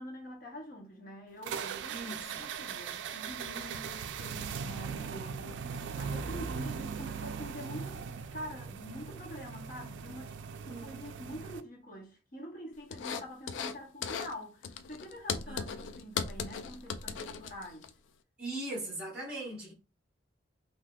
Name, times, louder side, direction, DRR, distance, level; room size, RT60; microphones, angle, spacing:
voice 1, 0.0-8.0 8.3-10.4 10.6-17.9, equal, 45° left, 0.8 m, -46 dB
sound 1, 1.4-11.6, right 6 dB, 70° right, 0.3 m, -39 dB
voice 2, 1.9-2.5 10.7-11.0 15.5-15.7 18.4-19.7, right 2 dB, 5° right, 1.1 m, -40 dB
sound 2, 12.9-13.8 14.0-14.3 14.6-17.9, left 6 dB, 75° left, 0.3 m, -37 dB
3.4 x 2.7 x 2.3 m
head